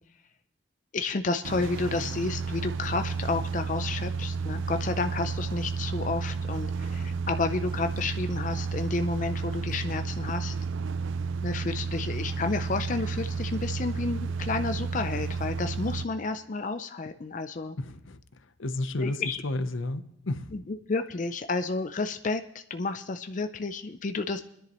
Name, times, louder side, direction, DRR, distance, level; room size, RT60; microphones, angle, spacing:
voice 1, 0.9-10.6 11.4-17.8 19.0-19.4 20.5-24.4, left 3 dB, 40° left, 8 dB, 0.5 m, -31 dB
sound 1, 1.4-16.1, right 5 dB, 80° right, 0.4 m, -32 dB
voice 2, 17.8-18.2 18.6-20.5, left 2 dB, 90° left, 11 dB, 0.8 m, -32 dB
29.0 x 10.5 x 3.0 m, 0.76 s
head